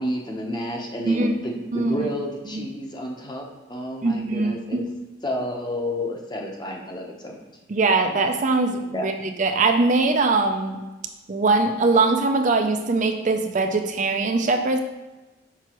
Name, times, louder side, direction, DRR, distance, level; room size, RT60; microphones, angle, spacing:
voice 1, 0.0-3.4 3.7-4.8 5.2-7.4 8.9-9.1, left 1 dB, 25° left, 0 dB, 0.8 m, -30 dB
voice 2, 1.7-2.1 2.5-2.7 4.0-4.8 7.7-10.8 11.3-14.8, right 3 dB, 40° right, 5 dB, 0.4 m, -22 dB
6.0 x 5.7 x 3.0 m, 1.1 s
head